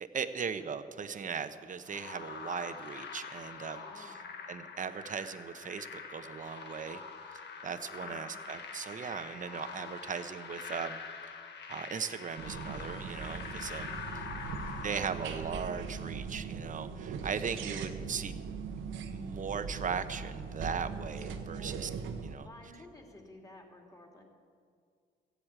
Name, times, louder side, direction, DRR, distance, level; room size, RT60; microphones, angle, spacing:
voice 1, 0.0-4.2 4.5-7.0 7.3-11.0 11.3-11.4 11.7-14.0 14.8-18.4 19.1-21.9 22.2-22.5, right 6 dB, 40° right, 10 dB, 0.9 m, -38 dB
sound 1, 1.9-16.2, left 5 dB, 60° left, 1.4 m, -45 dB
voice 2, 3.7-4.2 8.0-8.3 13.8-14.3 17.4-17.5 21.5-21.8 22.2-24.2, left 1 dB, 15° left, 1 dB, 2.7 m, -54 dB
sound 2, 12.4-22.3, right 5 dB, 75° right, 1.1 m, -40 dB
14.0 x 8.1 x 8.8 m, 2.1 s
cardioid pair, 90°, 20 cm